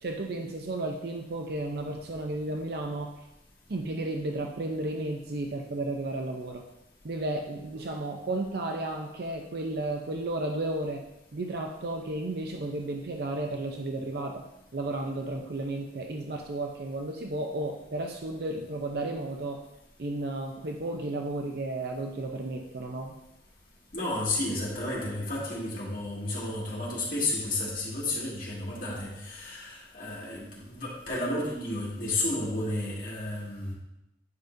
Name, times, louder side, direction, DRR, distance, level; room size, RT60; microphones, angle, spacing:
voice 1, 0.0-3.1 3.7-6.6 7.0-11.0 11.3-14.4 14.7-19.6 20.0-23.1, right 2 dB, 60° right, 2 dB, 0.6 m, -33 dB
voice 2, 23.9-33.7, left 2 dB, 50° left, -5 dB, 2.1 m, -32 dB
9.4 x 5.1 x 2.6 m, 0.90 s
head